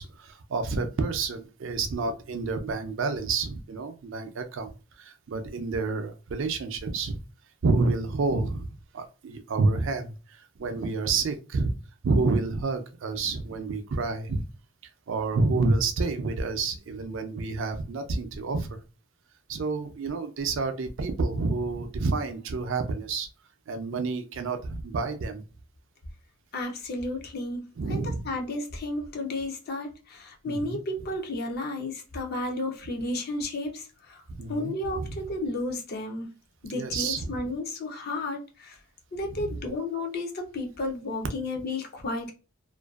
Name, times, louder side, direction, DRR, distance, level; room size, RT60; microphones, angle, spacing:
voice 1, 0.0-7.2 7.6-8.7 8.9-11.7 12.0-14.4 15.1-18.8 19.5-23.3 23.7-25.4 27.8-28.3 30.5-30.8 34.4-35.2 36.7-37.3 39.3-39.5, right 3 dB, 55° right, 0.4 m, -29 dB
voice 2, 26.5-34.2 34.5-36.3 36.6-38.8 39.1-42.3, left 2 dB, 45° left, 0.5 m, -33 dB
2.5 x 2.2 x 2.3 m
head